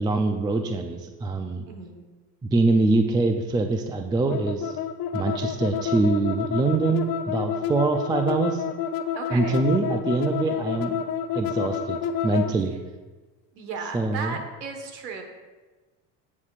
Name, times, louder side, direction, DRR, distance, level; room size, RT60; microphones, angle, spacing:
voice 1, 0.0-1.6 2.4-4.7 5.1-8.6 9.3-11.0 11.3-12.7 13.9-14.4, right 3 dB, 10° right, 6 dB, 0.3 m, -24 dB
voice 2, 1.7-2.0 9.1-9.6 13.5-15.2, right 4 dB, 85° right, 4 dB, 1.4 m, -35 dB
sound 1, 4.3-12.5, left 8 dB, 45° left, 0.7 m, -29 dB
15.0 x 6.4 x 2.5 m, 1.3 s
hypercardioid pair, 75°, 50 cm